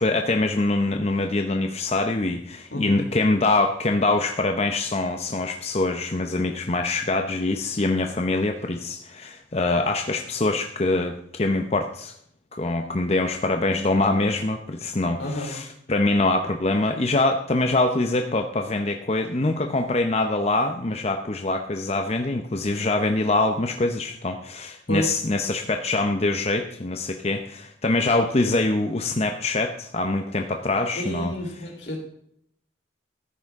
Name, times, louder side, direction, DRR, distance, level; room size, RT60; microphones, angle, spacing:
voice 1, 0.0-12.1 12.5-31.3, left 2 dB, 35° left, 5 dB, 0.8 m, -24 dB
voice 2, 2.7-3.0 15.2-15.5 24.9-25.1 30.9-32.0, equal, 80° left, 0 dB, 4.0 m, -30 dB
13.5 x 9.9 x 3.6 m, 0.68 s
head